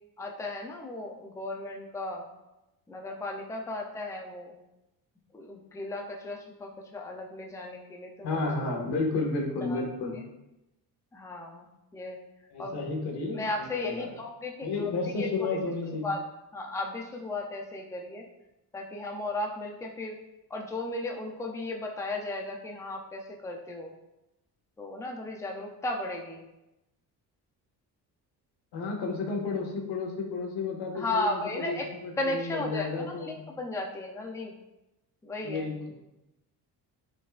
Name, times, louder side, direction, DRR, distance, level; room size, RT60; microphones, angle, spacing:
voice 1, 0.2-2.3 2.9-4.5 5.3-8.5 9.6-9.9 10.1-10.3 11.1-12.2 12.6-12.9 13.3-14.9 15.2-15.6 16.0-16.2 16.5-18.3 18.7-20.2 20.5-23.9 24.8-26.4 30.9-31.9 32.2-34.5 35.2-35.7, left 2 dB, 10° left, 1 dB, 0.6 m, -35 dB
voice 2, 8.2-10.2 12.5-14.1 14.6-16.1 28.7-33.4 35.4-36.0, left 3 dB, 85° left, 0 dB, 1.7 m, -32 dB
12.5 x 4.3 x 2.5 m, 0.95 s
cardioid pair, 155°, 38 cm